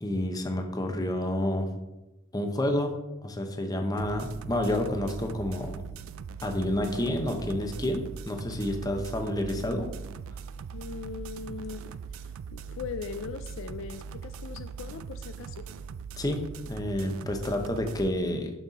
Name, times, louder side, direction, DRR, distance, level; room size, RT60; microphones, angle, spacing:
voice 1, 0.0-1.7 2.3-2.9 3.2-5.8 6.4-9.9 16.2-18.5, left 1 dB, 15° left, 4 dB, 0.7 m, -29 dB
sound 1, 4.0-18.1, right 5 dB, 70° right, 0.3 m, -40 dB
voice 2, 10.7-12.3 12.5-15.7, left 5 dB, 60° left, 10 dB, 0.3 m, -40 dB
6.2 x 5.4 x 4.0 m, 0.99 s
head